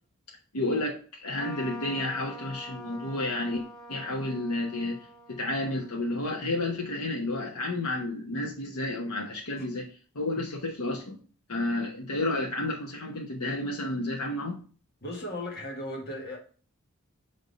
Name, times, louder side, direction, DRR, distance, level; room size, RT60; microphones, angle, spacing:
voice 1, 0.5-3.6 3.9-5.0 5.3-9.9 10.1-11.2 11.5-14.6, left 2 dB, 85° left, 1.0 m, -31 dB
Trumpet, 1.3-7.2, equal, ahead, 1.0 m, -46 dB
voice 2, 15.0-16.4, left 1 dB, 45° left, 1.6 m, -36 dB
5.4 x 3.5 x 5.1 m
head